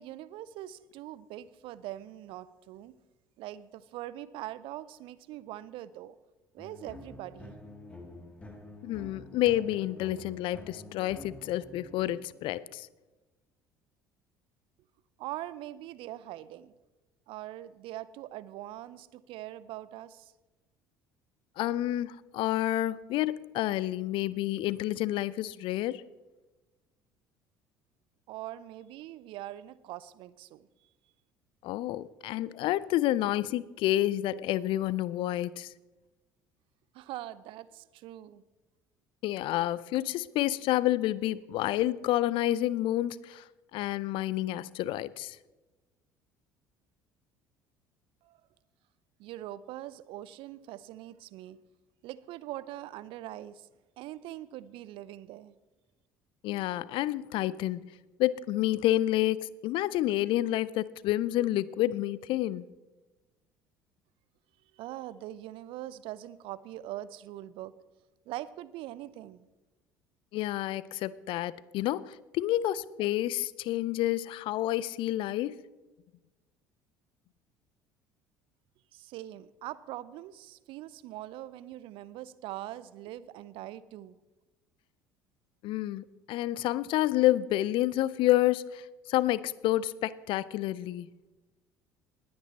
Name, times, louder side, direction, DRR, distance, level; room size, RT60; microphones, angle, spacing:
voice 1, 0.0-2.9 3.4-6.2 6.5-7.6 15.2-16.7 17.3-20.3 28.3-30.7 36.9-38.4 48.2-48.4 49.2-51.6 52.0-53.7 54.0-55.5 64.7-67.8 68.3-69.5 78.9-84.2, right 14 dB, 55° right, 0.6 m, -42 dB
sound 1, 6.6-12.5, left 1 dB, 10° left, 2.3 m, -48 dB
voice 2, 8.8-12.9 21.6-26.0 31.6-35.7 39.2-43.4 43.7-45.4 56.4-57.8 58.2-62.6 70.3-75.6 85.6-91.1, left 14 dB, 55° left, 0.5 m, -29 dB
20.0 x 8.7 x 4.1 m
figure-of-eight pair, 60°, 11 cm